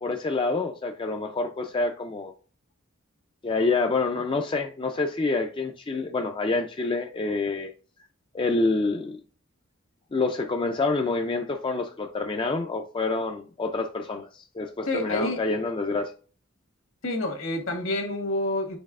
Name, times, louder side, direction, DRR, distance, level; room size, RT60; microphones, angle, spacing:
voice 1, 0.0-2.3 3.4-7.7 8.3-9.2 10.1-16.1, left 3 dB, 25° left, 0.3 m, -27 dB
voice 2, 14.9-15.4 17.0-18.8, left 1 dB, 70° left, 1.4 m, -28 dB
5.2 x 4.1 x 2.3 m
head